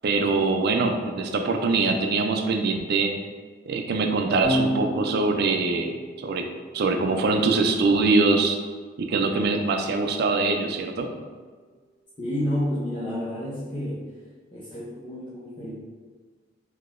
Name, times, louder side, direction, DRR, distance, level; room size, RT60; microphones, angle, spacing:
voice 1, 0.0-3.1 3.7-5.9 6.2-6.4 6.7-8.6 9.0-11.1, right 3 dB, 55° right, 4 dB, 0.4 m, -23 dB
Electric guitar / Bass guitar, 4.4-10.8, equal, 15° right, 1.3 m, -35 dB
voice 2, 12.2-14.0 14.5-15.7, left 1 dB, 25° left, -8 dB, 0.5 m, -30 dB
3.8 x 2.8 x 2.5 m, 1.5 s
head